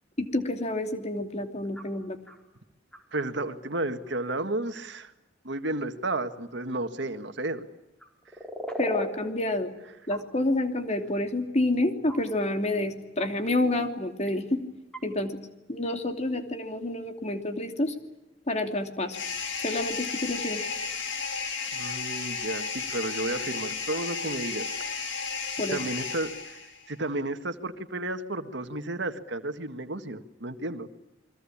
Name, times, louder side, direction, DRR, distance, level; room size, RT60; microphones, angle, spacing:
voice 1, 0.2-2.2 8.8-9.7 10.1-14.6 15.0-15.4 15.7-17.9 18.5-19.2 19.6-20.6 25.6-25.8, left 1 dB, 35° left, 6 dB, 2.8 m, -28 dB
sound 1, 1.7-1.9 2.3-2.4 2.9-3.0 5.6-5.7 8.0-9.1 10.1-10.2 11.5-11.6 12.1-12.2 13.2-13.3 14.3-14.4 14.9-15.0, equal, 5° left, 4.5 m, -36 dB
voice 2, 3.1-5.1 5.4-7.7 21.7-24.6 25.5-26.6 26.9-30.9, right 2 dB, 70° right, 9 dB, 1.7 m, -32 dB
sound 2, 19.1-26.9, left 5 dB, 80° left, 4.6 m, -33 dB
29.0 x 22.0 x 8.7 m, 0.97 s
head